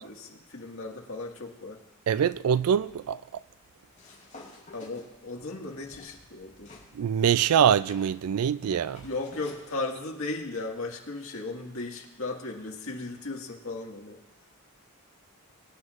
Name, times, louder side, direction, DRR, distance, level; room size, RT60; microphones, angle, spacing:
voice 1, 0.0-1.8 4.7-6.7 9.0-14.2, left 3 dB, 70° left, 1.9 m, -36 dB
voice 2, 2.1-3.2 7.0-9.0, right 8 dB, 85° right, 0.4 m, -24 dB
sound 1, 4.0-6.9 7.2-9.7, left 2 dB, 35° left, 3.8 m, -51 dB
23.5 x 9.5 x 2.5 m
head